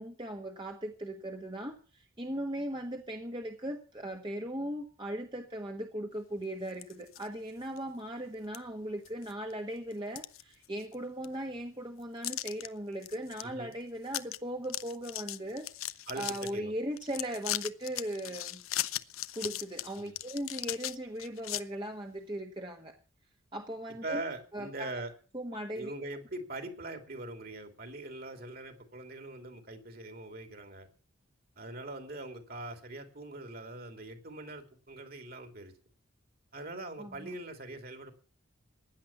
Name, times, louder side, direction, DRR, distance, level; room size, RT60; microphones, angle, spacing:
voice 1, 0.0-18.6 19.3-23.0 23.5-24.2 24.5-24.9 25.3-26.0 37.0-37.4, right 1 dB, 20° right, 3 dB, 1.4 m, -38 dB
sound 1, 6.7-7.3 7.8-7.9 8.5-8.6 9.1-9.5 9.9-10.9 11.2-11.3 12.2-12.7 13.0-13.4 13.7-13.8 14.1-14.4 14.6-16.5 17.0-21.6, left 14 dB, 80° left, 0.7 m, -38 dB
voice 2, 16.1-16.7 20.0-20.2 24.0-25.1 25.7-30.9 31.6-35.7 36.5-38.1, right 2 dB, 45° right, 6 dB, 2.9 m, -42 dB
16.5 x 10.5 x 7.1 m, 0.38 s
head